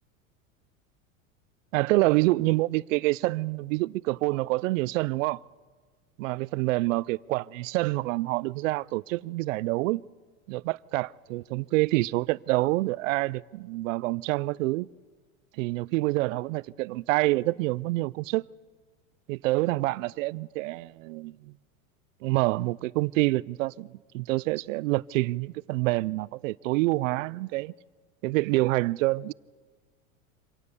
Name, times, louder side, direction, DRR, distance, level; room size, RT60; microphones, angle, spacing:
voice 1, 1.7-5.4 6.2-10.0 10.5-14.9 15.6-18.4 19.3-21.5 22.2-23.9 24.1-27.7 28.2-29.3, right 20 dB, 65° right, 0.6 m, -27 dB
25.0 x 18.0 x 7.0 m
hypercardioid pair, 115°, 41 cm